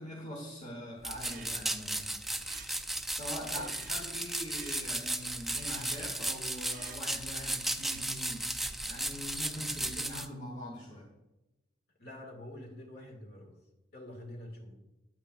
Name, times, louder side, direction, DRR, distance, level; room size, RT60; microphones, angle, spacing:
voice 1, 0.0-2.1 3.1-8.5 8.8-11.1, equal, 35° left, -2 dB, 1.3 m, -43 dB
sound 1, 1.0-10.3, right 1 dB, ahead, 0.3 m, -35 dB
sound 2, 1.1-8.2, right 6 dB, 45° right, 0.6 m, -54 dB
voice 2, 12.0-13.5 13.9-14.7, left 1 dB, 55° left, 1 dB, 2.0 m, -46 dB
9.3 x 8.7 x 2.5 m, 1.0 s
head